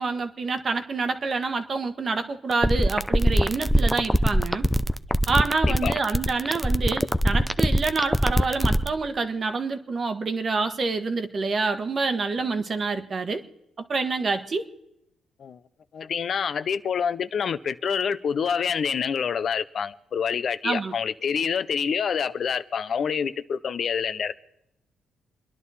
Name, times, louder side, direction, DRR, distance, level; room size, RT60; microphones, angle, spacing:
voice 1, 0.0-4.7 5.3-13.4 13.9-14.6 20.6-20.9, right 4 dB, 40° right, 1.3 m, -27 dB
sound 1, 2.5-8.9, equal, ahead, 0.6 m, -21 dB
voice 2, 15.9-24.3, left 7 dB, 55° left, 0.6 m, -27 dB
28.0 x 11.0 x 4.2 m
cardioid pair, 90°, 0 cm